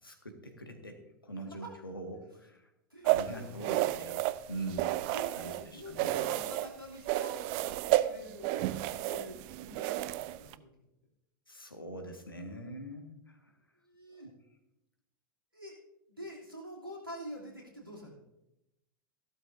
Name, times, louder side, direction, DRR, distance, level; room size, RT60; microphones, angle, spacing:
voice 1, 0.0-2.7 3.0-5.0 5.3-6.2 11.5-13.5 14.1-14.3, right 1 dB, 85° left, 4 dB, 1.8 m, -43 dB
voice 2, 2.9-3.9 5.1-10.7 13.8-14.3 15.5-15.8 16.1-18.2, equal, 90° right, -3 dB, 3.0 m, -47 dB
sound 1, 3.1-5.6 6.0-6.7 7.1-10.5, right 16 dB, 45° right, 0.5 m, -31 dB
15.0 x 12.5 x 2.7 m, 0.88 s
figure-of-eight pair, 85°, 11 cm